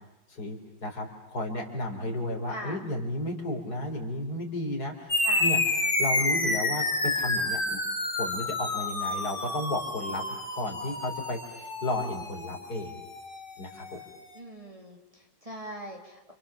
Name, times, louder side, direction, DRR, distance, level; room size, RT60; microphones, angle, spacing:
voice 1, 0.3-7.8 8.2-13.0 13.6-14.0, left 1 dB, 55° left, 2 dB, 4.5 m, -33 dB
voice 2, 2.5-2.8 5.2-5.5 14.3-16.3, equal, 15° right, 0 dB, 3.2 m, -41 dB
sound 1, 5.1-14.0, left 2 dB, 25° left, 3.0 m, -29 dB
29.0 x 28.5 x 7.1 m, 0.92 s
omnidirectional pair, 2.0 m